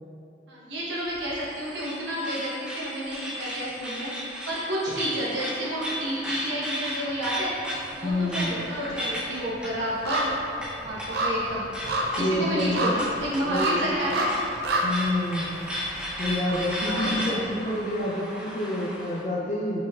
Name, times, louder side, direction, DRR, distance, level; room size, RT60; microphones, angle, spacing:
voice 1, 0.5-7.7 8.0-10.3 10.8-11.7 12.1-14.4 16.8-17.4, equal, 85° right, -7 dB, 1.1 m, -30 dB
sound 1, 1.0-19.2, left 1 dB, 5° right, 0.6 m, -36 dB
sound 2, 7.1-7.9 8.1-18.1 18.5-18.6, right 1 dB, 60° right, 0.5 m, -31 dB
voice 2, 8.0-8.5 12.2-12.9 13.5-13.9 14.8-15.5 16.2-19.8, left 1 dB, 45° left, -4 dB, 0.6 m, -28 dB
5.0 x 3.4 x 2.4 m, 2.7 s
head